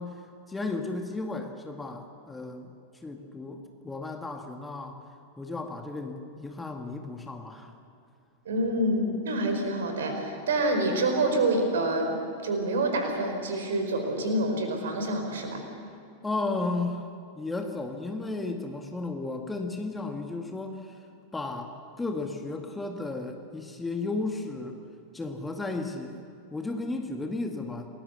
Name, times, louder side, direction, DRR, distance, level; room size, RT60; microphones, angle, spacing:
voice 1, 0.0-2.7 3.0-5.0 5.4-7.7 16.2-17.1 17.3-21.0 21.3-24.8 25.1-26.2 26.5-27.9, left 3 dB, 10° left, 4 dB, 2.1 m, -34 dB
voice 2, 8.4-15.6, right 1 dB, 60° right, 4 dB, 4.8 m, -27 dB
29.0 x 20.5 x 7.0 m, 2.5 s
figure-of-eight pair, 90°, 0 cm